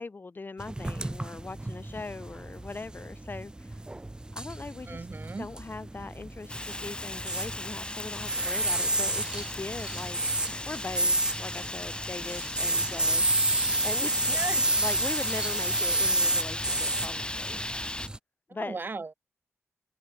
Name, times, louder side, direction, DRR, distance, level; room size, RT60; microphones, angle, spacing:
voice 1, 0.0-3.7 4.3-5.0 5.4-10.2 10.6-14.3 14.7-17.6 18.5-18.8, left 3 dB, 40° left, 1.6 m, -40 dB
spraypaint graffiti, 0.6-18.2, right 1 dB, 15° right, 0.7 m, -30 dB
voice 2, 4.9-5.5 14.3-14.7 18.6-19.1, right 3 dB, 40° right, 2.5 m, -36 dB
Fire, 6.5-18.1, left 1 dB, 20° left, 1.9 m, -37 dB
cardioid pair, 50°, 5 cm